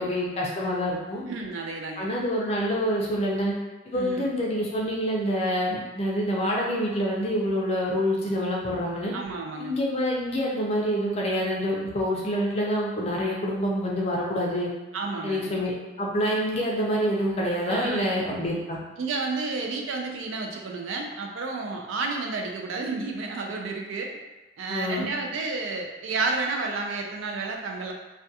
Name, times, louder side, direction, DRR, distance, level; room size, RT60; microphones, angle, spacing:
voice 1, 0.0-1.2 2.0-3.5 3.9-9.1 9.6-14.7 15.2-18.8 24.7-25.1, equal, 30° left, -3 dB, 0.4 m, -27 dB
voice 2, 1.3-2.1 3.9-4.3 9.1-9.7 14.9-15.5 17.7-18.1 19.0-24.1 24.6-27.9, right 3 dB, 80° right, 2 dB, 0.4 m, -31 dB
2.3 x 2.2 x 2.7 m, 1.2 s
head